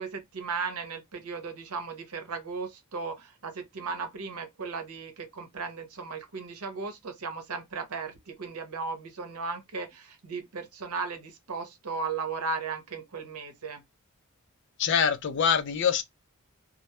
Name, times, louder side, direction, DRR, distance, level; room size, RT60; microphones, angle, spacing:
voice 1, 0.0-13.8, right 4 dB, 90° right, 0.7 m, -36 dB
voice 2, 14.8-16.0, left 7 dB, 55° left, 0.4 m, -24 dB
2.2 x 2.0 x 2.8 m
head